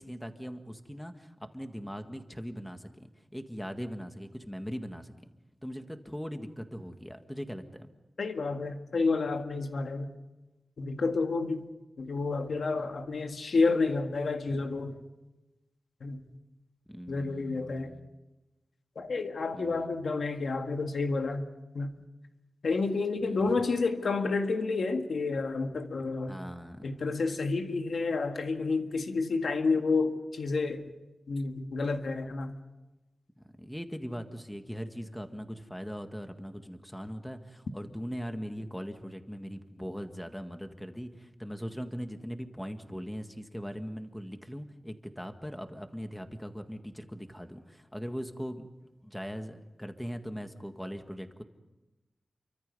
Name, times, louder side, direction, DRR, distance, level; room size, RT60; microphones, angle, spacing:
voice 1, 0.0-5.3 5.6-7.9 16.9-18.1 19.5-19.9 23.2-23.4 26.3-26.9 33.4-48.7 49.0-51.4, equal, 5° left, 6 dB, 1.7 m, -40 dB
voice 2, 8.2-10.1 10.8-11.7 12.0-14.9 16.0-16.2 17.1-17.9 18.9-21.4 21.7-21.9 22.6-26.3 26.8-30.9 31.3-32.6, left 3 dB, 80° left, 5 dB, 1.8 m, -30 dB
29.0 x 24.5 x 5.4 m, 1.0 s
wide cardioid pair, 100°, 0 cm